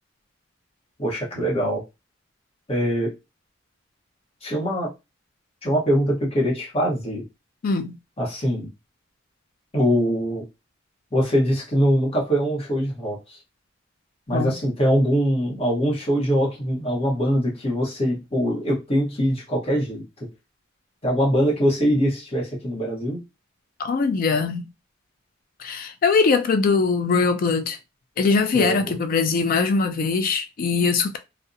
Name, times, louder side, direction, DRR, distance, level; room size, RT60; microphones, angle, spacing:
voice 1, 1.0-1.8 2.7-3.1 4.4-4.9 5.6-7.3 8.2-8.7 9.7-10.4 11.1-13.4 14.3-20.3 21.0-23.2 28.5-28.9, equal, 30° left, 0.9 m, -23 dB
voice 2, 7.6-7.9 14.3-14.6 23.8-24.6 25.6-27.8 28.2-31.2, left 4 dB, 45° left, 0.3 m, -21 dB
2.6 x 2.0 x 2.4 m
head